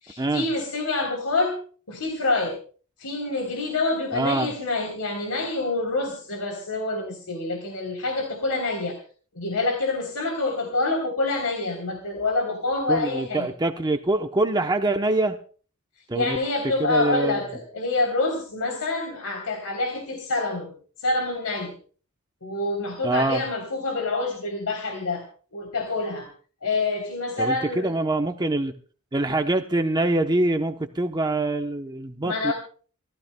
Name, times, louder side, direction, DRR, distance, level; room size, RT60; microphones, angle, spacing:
voice 1, 0.0-1.6 1.9-2.6 3.0-9.0 9.3-13.5 16.1-20.7 21.0-21.7 22.4-25.2 25.5-26.3 26.6-27.9 32.2-32.5, left 2 dB, 80° left, 2 dB, 3.4 m, -26 dB
voice 2, 4.1-4.5 12.9-15.4 16.1-16.4 16.8-17.4 23.0-23.4 27.4-28.7 29.1-32.5, right 2 dB, 20° right, 5 dB, 0.8 m, -24 dB
28.0 x 14.5 x 2.2 m, 0.42 s
head